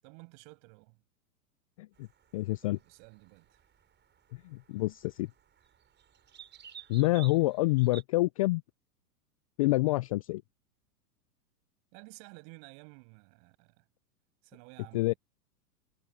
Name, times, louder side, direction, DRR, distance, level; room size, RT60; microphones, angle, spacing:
voice 1, 0.0-1.0 2.6-3.6 11.9-13.8 14.4-15.2, right 40 dB or more, 45° right, 7.6 m, -53 dB
sound 1, 1.9-8.0, right 8 dB, 20° right, 5.7 m, -54 dB
voice 2, 2.3-2.8 4.4-5.3 6.9-8.6 9.6-10.4 14.9-15.1, left 20 dB, 25° left, 0.3 m, -27 dB
hypercardioid pair, 110°, 47 cm